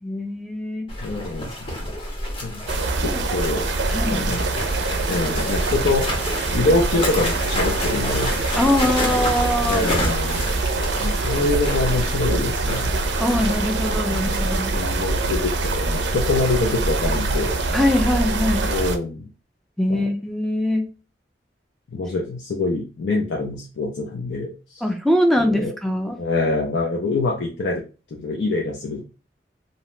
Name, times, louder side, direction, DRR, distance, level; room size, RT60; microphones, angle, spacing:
voice 1, 0.0-0.9 3.0-3.2 3.9-4.4 8.6-9.9 13.2-14.7 17.7-18.7 19.8-20.9 24.8-26.2, left 1 dB, ahead, 4 dB, 0.4 m, -22 dB
sound 1, 0.9-18.3, left 1 dB, 30° left, 0.7 m, -31 dB
voice 2, 1.0-1.9 2.4-2.6 3.0-3.6 4.0-4.5 5.1-6.1 6.5-8.4 9.7-10.6 11.0-12.9 14.1-17.5 18.7-19.3 19.9-20.0 21.9-24.8 25.4-25.7 26.2-27.8 28.1-29.0, left 3 dB, 70° left, -1 dB, 0.5 m, -25 dB
sound 2, 2.7-19.0, right 3 dB, 75° right, 0.4 m, -24 dB
2.7 x 2.0 x 3.0 m, 0.33 s
head